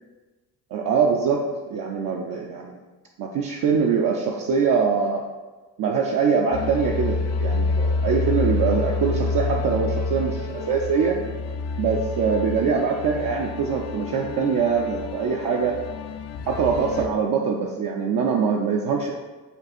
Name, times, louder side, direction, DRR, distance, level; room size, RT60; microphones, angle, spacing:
voice 1, 0.7-2.7 3.2-5.2 5.8-11.2 11.8-15.8 16.5-19.1, right 5 dB, 55° right, 0 dB, 0.6 m, -23 dB
sound 1, 6.5-17.1, left 3 dB, 40° left, 0.5 m, -28 dB
5.2 x 2.3 x 4.3 m, 1.3 s
cardioid pair, 75°, 40 cm